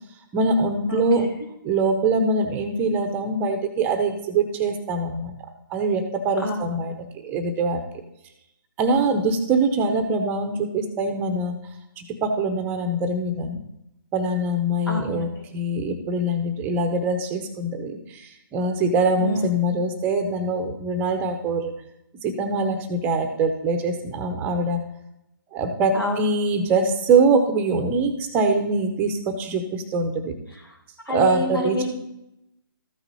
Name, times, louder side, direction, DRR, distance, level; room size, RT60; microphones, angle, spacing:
voice 1, 0.3-1.3 1.6-5.3 5.7-7.8 8.8-11.5 12.0-13.6 14.1-21.7 22.2-24.8 25.5-30.4 31.1-31.9, right 3 dB, 15° right, 7 dB, 0.7 m, -23 dB
voice 2, 0.9-1.2 6.4-6.6 14.9-15.5 19.2-19.4 25.9-26.3 31.1-31.9, left 1 dB, 85° left, 1 dB, 3.5 m, -27 dB
13.5 x 5.9 x 4.1 m, 0.84 s
hypercardioid pair, 150°, 12 cm